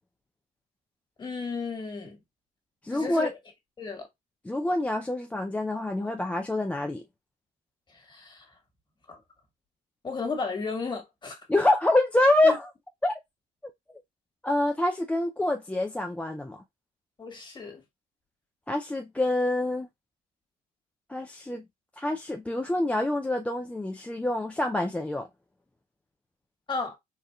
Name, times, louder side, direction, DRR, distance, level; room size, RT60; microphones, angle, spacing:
voice 1, 1.2-2.2 2.9-3.3 3.8-4.1 8.1-8.4 9.1-9.2 10.0-11.3 12.4-12.5 17.2-17.8 26.7-27.0, left 4 dB, 25° left, 1.7 m, -33 dB
voice 2, 2.8-3.3 4.4-7.0 11.5-12.7 13.0-13.1 14.4-16.6 18.7-19.9 21.1-21.6 22.0-25.3, left 1 dB, 10° left, 0.4 m, -26 dB
4.2 x 2.4 x 2.3 m
cardioid pair, 110°, 17 cm